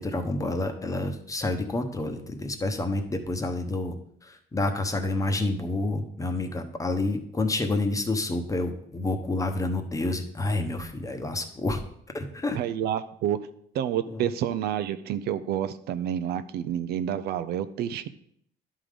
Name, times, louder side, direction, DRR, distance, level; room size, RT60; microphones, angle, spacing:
voice 1, 0.0-4.0 4.2-11.8 12.1-12.6 14.1-14.3, left 2 dB, 20° left, 6 dB, 0.9 m, -29 dB
voice 2, 12.5-13.4 13.7-18.1, right 10 dB, 70° right, 11 dB, 0.5 m, -29 dB
11.0 x 3.8 x 5.0 m, 0.67 s
cardioid pair, 110°, 17 cm